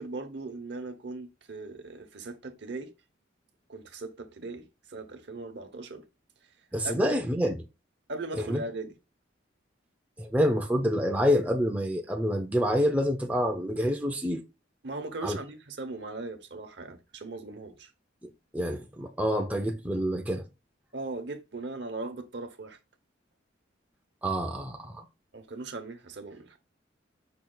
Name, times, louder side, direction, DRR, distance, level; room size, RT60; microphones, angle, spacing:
voice 1, 0.0-2.9 3.7-6.0 6.8-7.1 8.1-8.9 14.8-17.9 20.9-22.8 25.3-26.6, right 3 dB, 60° right, 0.8 m, -39 dB
voice 2, 6.7-7.7 8.4-8.6 10.2-14.4 15.2-15.4 18.5-20.5 24.2-25.1, equal, 10° right, 0.4 m, -27 dB
5.6 x 2.3 x 3.8 m
head